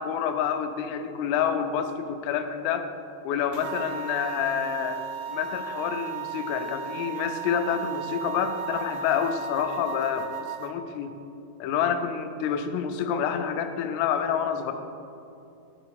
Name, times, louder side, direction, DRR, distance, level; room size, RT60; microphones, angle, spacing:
voice 1, 0.0-2.9 3.2-10.3 10.6-11.2 11.6-14.7, left 8 dB, 90° left, 7 dB, 3.3 m, -28 dB
sound 1, 3.5-10.7, right 7 dB, 85° right, 2.8 m, -35 dB
11.0 x 6.9 x 4.6 m, 2.6 s
omnidirectional pair, 5.8 m